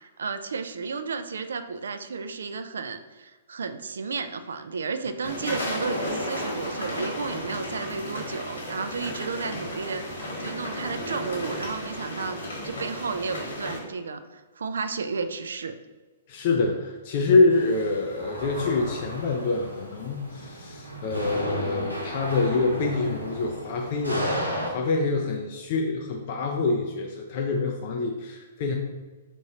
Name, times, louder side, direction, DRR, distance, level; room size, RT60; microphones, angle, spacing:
voice 1, 0.0-10.0 10.4-12.4 12.6-15.7, right 4 dB, 65° right, 9 dB, 0.3 m, -33 dB
sound 1, 5.2-13.8, left 1 dB, 65° left, 1.5 m, -33 dB
voice 2, 16.3-28.7, left 3 dB, 40° left, 1 dB, 0.4 m, -26 dB
sound 2, 17.5-24.7, equal, 90° right, 0.9 m, -34 dB
3.6 x 3.0 x 4.1 m, 1.3 s
figure-of-eight pair, 110°, 0 cm